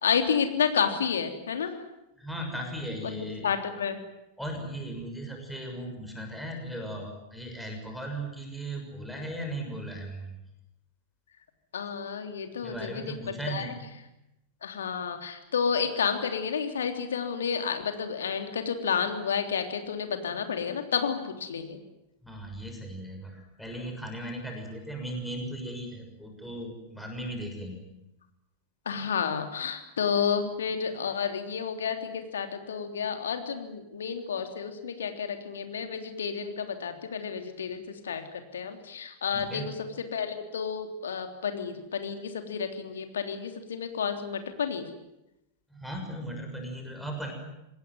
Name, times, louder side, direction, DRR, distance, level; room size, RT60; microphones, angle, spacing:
voice 1, 0.0-1.7 3.0-3.1 3.4-4.0 11.7-13.2 13.5-13.7 14.6-21.8 28.8-44.8, left 6 dB, 65° left, 6 dB, 3.3 m, -30 dB
voice 2, 2.2-3.5 4.4-10.4 12.6-13.8 22.2-27.8 39.3-39.7 45.7-47.3, right 1 dB, ahead, 1 dB, 6.6 m, -37 dB
27.0 x 20.5 x 9.6 m, 0.89 s
figure-of-eight pair, 90°, 0 cm